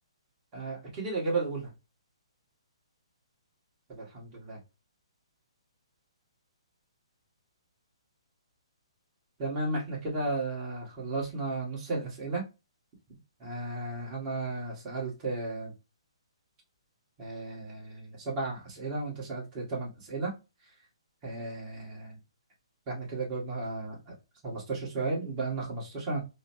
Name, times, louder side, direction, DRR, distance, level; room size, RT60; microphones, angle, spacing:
voice 1, 0.5-1.7 3.9-4.6 9.4-12.5 13.4-15.7 17.2-20.3 21.2-22.2 22.9-24.1 24.4-26.2, right 3 dB, 25° right, -3 dB, 1.7 m, -34 dB
3.8 x 2.2 x 2.6 m, 0.27 s
hypercardioid pair, 150°, 3 cm